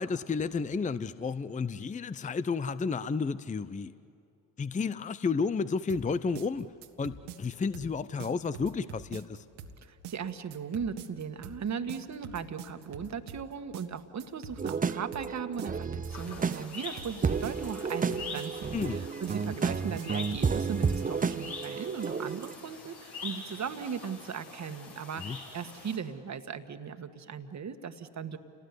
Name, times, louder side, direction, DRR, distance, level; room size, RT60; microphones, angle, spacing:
voice 1, 0.0-3.9 4.6-6.7 7.0-9.4 18.7-19.0 25.2-25.4, left 5 dB, 20° left, 15 dB, 0.7 m, -32 dB
sound 1, 5.9-20.6, right 7 dB, 80° right, 1.6 m, -45 dB
voice 2, 9.8-28.4, right 6 dB, 40° right, 9 dB, 1.7 m, -38 dB
sound 2, 14.6-22.6, right 5 dB, 20° right, 0.7 m, -32 dB
sound 3, 16.1-26.0, left 4 dB, 65° left, 5.9 m, -45 dB
29.0 x 19.0 x 9.8 m, 2.6 s
hypercardioid pair, 60°, 41 cm